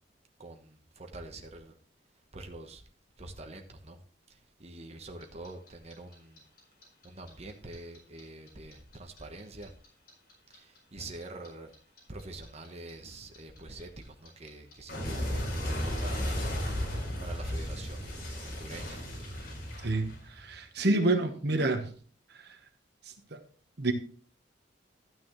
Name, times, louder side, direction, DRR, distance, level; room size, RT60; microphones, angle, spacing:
voice 1, 0.4-1.7 2.3-2.8 3.2-4.0 4.6-6.4 7.0-9.7 10.5-11.7 12.1-16.5 17.2-18.2 18.4-19.0, right 2 dB, 35° right, 1.1 m, -45 dB
Clock, 5.2-8.2 8.5-11.5 11.7-20.6, equal, 55° left, 4.7 m, -35 dB
voice 2, 20.4-21.9 23.3-23.4 23.8-23.9, right 2 dB, 60° right, 1.2 m, -27 dB
12.5 x 9.4 x 3.1 m
head